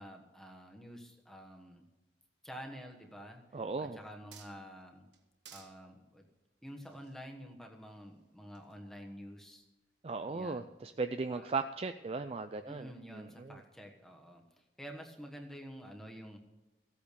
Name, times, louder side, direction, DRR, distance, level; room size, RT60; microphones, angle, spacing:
voice 1, 0.0-1.9 2.4-5.1 5.5-6.3 6.6-9.7 10.3-10.7 11.3-11.5 12.7-16.4, equal, 5° left, 2 dB, 1.3 m, -49 dB
voice 2, 3.5-4.0 10.0-13.6, right 4 dB, 35° right, 9 dB, 0.4 m, -37 dB
sound 1, 3.9-4.8 5.1-5.8 6.6-8.1 8.6-8.8, right 8 dB, 80° right, 1.4 m, -57 dB
15.5 x 8.5 x 6.8 m, 1.1 s
head